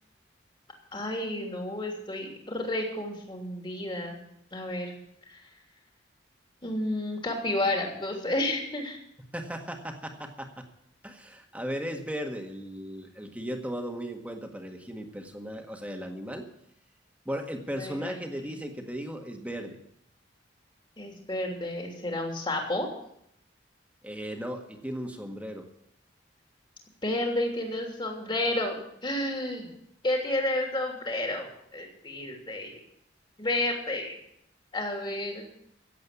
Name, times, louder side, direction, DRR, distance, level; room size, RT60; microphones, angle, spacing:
voice 1, 0.9-4.9 5.3-5.4 6.6-9.0 17.7-18.2 21.0-22.9 27.0-29.7 30.0-32.8 33.4-34.2 34.7-35.4, left 1 dB, 25° left, 1 dB, 3.1 m, -31 dB
voice 2, 9.3-10.7 11.0-16.5 17.2-19.8 24.0-25.7, equal, 10° right, 3 dB, 1.7 m, -36 dB
16.0 x 8.0 x 8.5 m, 0.75 s
head